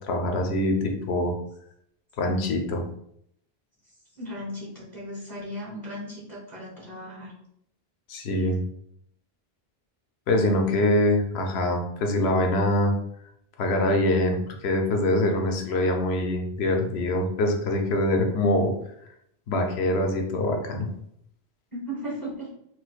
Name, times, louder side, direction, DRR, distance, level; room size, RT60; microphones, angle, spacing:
voice 1, 0.1-1.3 2.2-2.8 8.1-8.6 10.3-12.9 13.6-18.7 19.5-20.9, left 1 dB, 85° left, 3 dB, 0.9 m, -24 dB
voice 2, 4.2-7.3 21.7-22.5, equal, 20° right, -7 dB, 1.2 m, -36 dB
4.4 x 2.2 x 2.4 m, 0.74 s
omnidirectional pair, 1.0 m